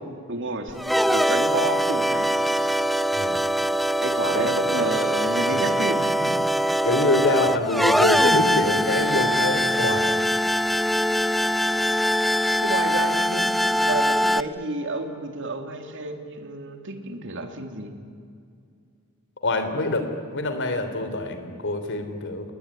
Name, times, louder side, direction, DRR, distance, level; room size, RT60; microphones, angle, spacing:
voice 1, 0.3-2.3 4.0-6.4 9.2-9.3 12.6-18.0, right 2 dB, 60° right, 6 dB, 2.8 m, -30 dB
sound 1, 0.7-14.4, equal, ahead, 0.6 m, -22 dB
voice 2, 6.8-10.1 19.4-22.5, left 2 dB, 60° left, 8 dB, 3.2 m, -25 dB
29.5 x 20.0 x 10.0 m, 2.3 s
head